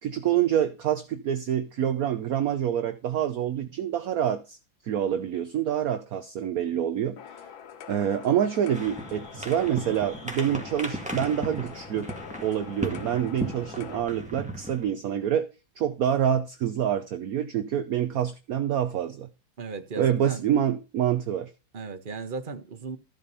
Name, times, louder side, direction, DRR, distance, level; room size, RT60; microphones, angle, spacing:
voice 1, 0.0-4.6 4.8-7.2 7.9-12.1 12.4-15.5 15.8-19.3 20.0-21.5, right 9 dB, 60° right, 1.0 m, -26 dB
sound 1, 7.2-14.0, left 8 dB, 90° left, 1.8 m, -44 dB
sound 2, 8.7-14.9, right 1 dB, 5° right, 1.9 m, -36 dB
voice 2, 19.6-20.5 21.7-23.0, right 4 dB, 30° right, 1.2 m, -36 dB
14.0 x 5.0 x 5.5 m
omnidirectional pair, 2.1 m